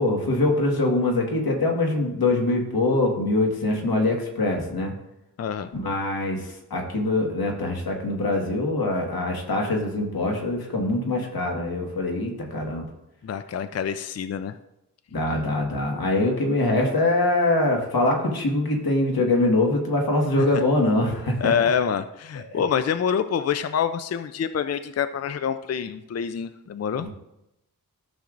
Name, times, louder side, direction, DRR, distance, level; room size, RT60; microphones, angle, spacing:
voice 1, 0.0-4.9 5.7-12.9 15.1-21.5 22.5-22.6 27.0-27.1, left 2 dB, 90° left, 1 dB, 1.7 m, -23 dB
voice 2, 5.4-5.7 13.2-14.6 20.4-20.5 21.4-27.1, left 7 dB, 45° left, 11 dB, 0.4 m, -26 dB
13.5 x 6.5 x 2.5 m, 0.87 s
wide cardioid pair, 80°, 36 cm